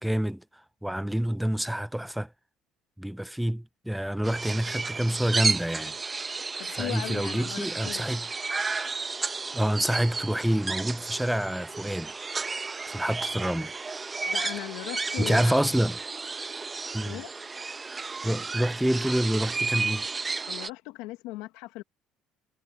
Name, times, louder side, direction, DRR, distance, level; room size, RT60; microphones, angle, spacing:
voice 1, 0.0-0.4 0.8-2.3 3.0-6.0 6.7-8.2 9.5-12.1 12.9-13.7 15.2-16.0 16.9-17.2 18.2-20.0, right 1 dB, 5° right, 0.5 m, -27 dB
sound 1, 4.2-20.7, right 4 dB, 25° right, 0.9 m, -33 dB
voice 2, 6.6-8.1 14.3-15.7 17.0-17.3 20.5-21.8, left 19 dB, 80° left, 1.3 m, -38 dB
supercardioid pair, 80°, 0 cm